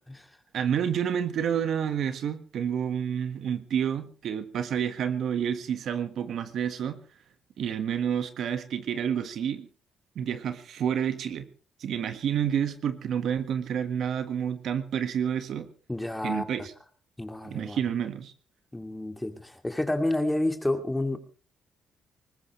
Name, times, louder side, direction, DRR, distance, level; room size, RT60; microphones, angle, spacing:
voice 1, 0.5-7.0 7.6-9.7 10.1-11.5 11.8-15.7 16.2-16.7 17.4-18.3, right 8 dB, 70° right, 9 dB, 1.6 m, -29 dB
voice 2, 15.9-16.7 17.2-17.8 18.7-21.2, left 1 dB, 10° left, 6 dB, 2.5 m, -30 dB
21.0 x 19.5 x 3.2 m, 0.36 s
cardioid pair, 90°, 0 cm